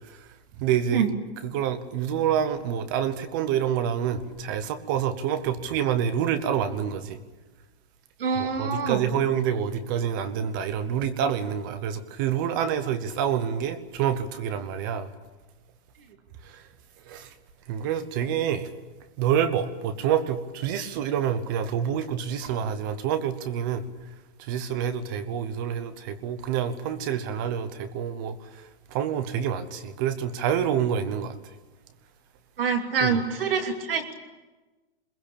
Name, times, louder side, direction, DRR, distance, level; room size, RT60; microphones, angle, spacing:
voice 1, 0.6-1.0 1.4-7.2 8.4-15.1 17.1-17.3 17.7-18.7 19.2-23.8 24.5-28.4 28.9-31.3 33.0-33.2, right 9 dB, 20° right, 0.9 m, -27 dB
voice 2, 8.2-9.0 32.6-34.1, right 5 dB, 60° right, 2.9 m, -25 dB
23.0 x 21.5 x 8.7 m
hypercardioid pair, 180°, 32 cm